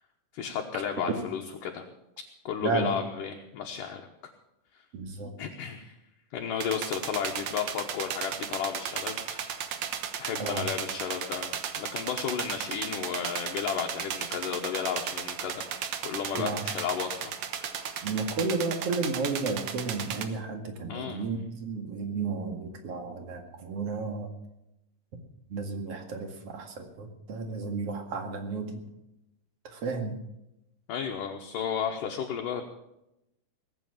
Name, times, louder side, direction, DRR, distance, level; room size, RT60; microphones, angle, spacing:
voice 1, 0.3-1.8 2.5-4.3 5.4-6.0 6.3-15.7 16.0-17.9 20.9-21.2 30.9-32.6, left 7 dB, 70° left, 2 dB, 2.4 m, -33 dB
voice 2, 2.6-2.9 4.9-5.3 10.4-10.7 16.3-16.6 18.0-24.3 25.5-28.8 29.6-30.2, right 4 dB, 45° right, 5 dB, 2.4 m, -32 dB
sound 1, 6.6-20.2, right 8 dB, 65° right, 1.8 m, -35 dB
19.5 x 8.8 x 7.1 m, 0.88 s
omnidirectional pair, 4.6 m